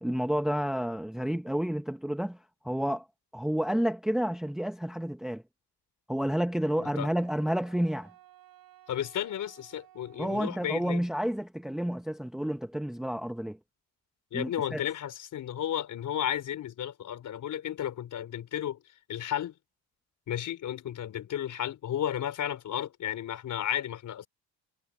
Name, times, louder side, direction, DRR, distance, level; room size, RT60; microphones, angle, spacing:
voice 1, 0.0-2.4 2.6-3.0 3.3-5.4 6.1-8.1 10.2-13.6 14.3-14.8, equal, ahead, 0.8 m, -30 dB
Wind instrument woodwind instrument, 6.6-10.9, right 13 dB, 60° right, 7.4 m, -57 dB
voice 2, 8.9-11.0 14.3-18.8 19.1-19.5 20.3-24.3, left 10 dB, 45° left, 4.4 m, -33 dB
cardioid pair, 150°, 41 cm